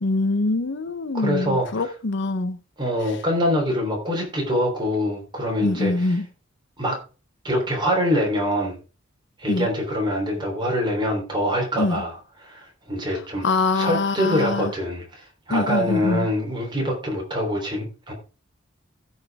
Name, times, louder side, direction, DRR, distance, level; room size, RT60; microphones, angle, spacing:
voice 1, 0.0-2.6 5.6-6.3 9.5-9.7 11.8-12.0 13.4-14.7 15.5-16.3, left 3 dB, 65° left, 0.7 m, -24 dB
voice 2, 1.1-1.9 2.8-6.2 6.8-7.0 7.4-8.8 9.4-13.5 13.7-18.1, equal, 25° right, 3.4 m, -25 dB
15.5 x 5.6 x 3.5 m
head